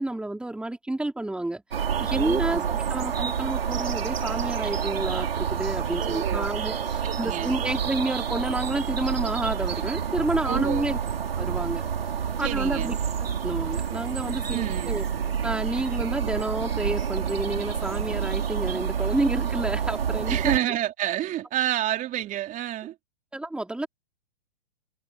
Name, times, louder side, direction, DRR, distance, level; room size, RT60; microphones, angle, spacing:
voice 1, 0.0-11.0 11.4-11.8 12.4-13.0 13.4-15.0 15.4-20.5 23.3-23.9, right 1 dB, 5° right, 3.4 m, -29 dB
sound 1, 1.7-20.6, right 7 dB, 75° right, 3.6 m, -28 dB
voice 2, 2.1-2.8 6.0-6.5 7.0-7.6 10.4-10.9 12.4-13.0 14.4-15.0 20.3-22.9, right 13 dB, 25° right, 3.4 m, -29 dB
hypercardioid pair, 120°, 30 cm